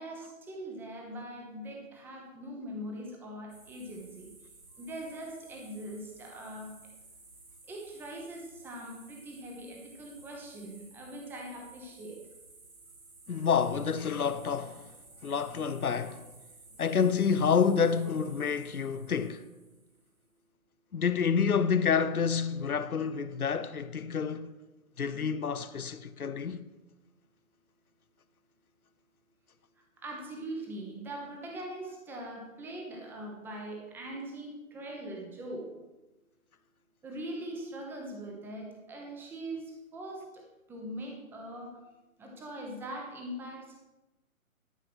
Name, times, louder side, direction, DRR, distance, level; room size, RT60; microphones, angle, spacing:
voice 1, 0.0-4.3 4.8-6.7 7.7-12.2 30.0-35.7 37.0-39.6 39.9-40.4 40.7-41.7 42.2-43.8, right 1 dB, 5° right, 1.0 m, -41 dB
sound 1, 3.5-20.2, right 3 dB, 80° right, 4.1 m, -55 dB
voice 2, 13.3-14.8 15.2-16.2 16.8-19.5 20.9-24.5 25.0-26.6, left 6 dB, 90° left, 0.9 m, -28 dB
12.0 x 5.8 x 6.2 m
hypercardioid pair, 145°, 43 cm